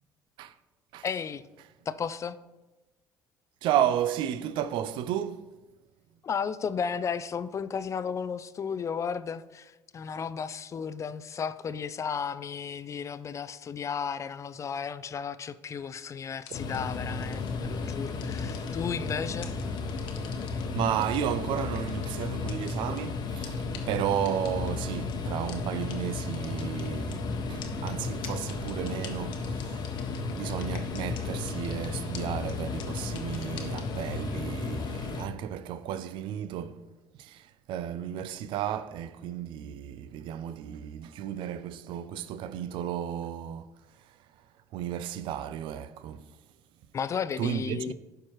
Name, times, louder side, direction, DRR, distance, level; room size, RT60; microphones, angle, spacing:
voice 1, 1.0-1.4 1.9-2.4 6.2-19.5 46.9-47.9, left 6 dB, 35° left, 0.4 m, -34 dB
voice 2, 3.6-5.5 20.7-36.9 37.2-43.7 44.0-44.3 44.7-46.3 47.4-47.9, right 10 dB, 70° right, 0.4 m, -33 dB
sound 1, 16.4-16.8 17.2-17.5 17.9-19.1 19.4-20.6 21.0-23.0 23.4-23.5 23.7-23.8 24.2-24.7 25.1-25.2 25.5-25.6 25.9-26.0 26.2-27.1 27.6-31.2 31.5-31.9 32.1-32.2 32.5-32.6 32.8-33.8, left 9 dB, 70° left, 1.0 m, -44 dB
sound 2, 16.5-35.3, left 4 dB, 50° left, 0.9 m, -34 dB
11.5 x 4.6 x 3.0 m
supercardioid pair, 80°, 9 cm